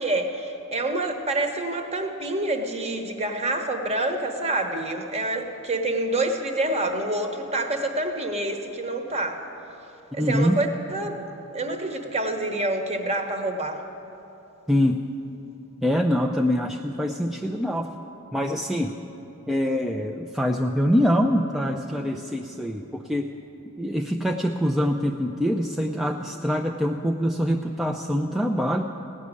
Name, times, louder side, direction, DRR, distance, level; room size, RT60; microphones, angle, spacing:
voice 1, 0.0-9.4 10.1-11.2 11.5-13.8, right 2 dB, 30° right, 5 dB, 1.0 m, -27 dB
voice 2, 10.2-10.6 14.7-15.1 15.8-17.9 18.3-18.9 19.5-23.3 23.8-28.8, equal, ahead, 2 dB, 0.3 m, -24 dB
16.5 x 6.1 x 9.7 m, 2.9 s
head